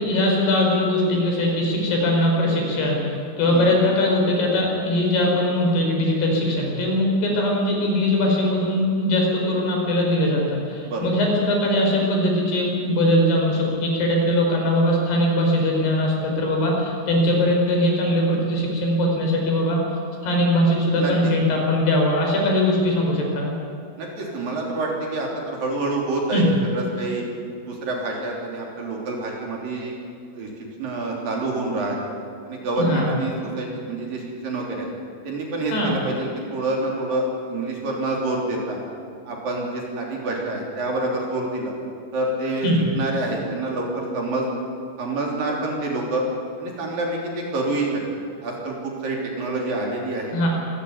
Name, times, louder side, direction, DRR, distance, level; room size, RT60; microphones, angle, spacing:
voice 1, 0.0-19.8 20.2-23.5 26.3-26.5 32.8-33.1 35.7-35.9 42.6-42.8 50.3-50.5, left 1 dB, 65° left, 0 dB, 6.6 m, -21 dB
voice 2, 21.0-21.3 24.0-26.4 26.7-27.2 27.7-29.9 30.3-30.5 30.8-32.1 32.5-34.9 35.2-38.8 39.3-41.7 42.1-42.7 42.9-44.5 45.0-46.2 46.6-50.4, right 2 dB, 55° right, -1 dB, 4.8 m, -27 dB
25.5 x 14.5 x 9.6 m, 2.3 s
omnidirectional pair, 5.1 m